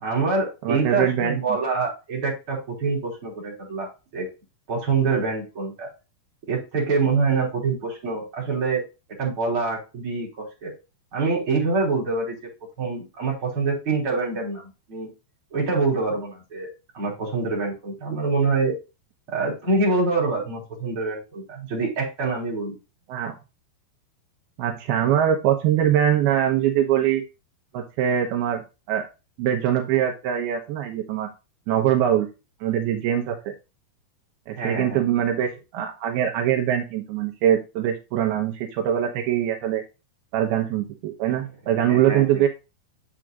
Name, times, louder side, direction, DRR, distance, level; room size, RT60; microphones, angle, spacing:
voice 1, 0.0-4.3 4.7-5.9 6.5-8.8 9.2-10.7 11.1-12.4 12.8-15.1 15.5-16.7 16.9-18.8 19.3-22.8 34.5-35.3 41.9-42.4, right 4 dB, 35° right, -3 dB, 4.6 m, -25 dB
voice 2, 0.6-1.4 23.1-23.4 24.6-27.2 27.7-28.6 28.9-29.0 29.4-31.3 31.7-32.3 32.6-33.5 34.5-39.8 40.3-42.5, right 10 dB, 80° right, 2 dB, 2.9 m, -23 dB
9.8 x 7.6 x 2.5 m, 0.28 s
omnidirectional pair, 4.5 m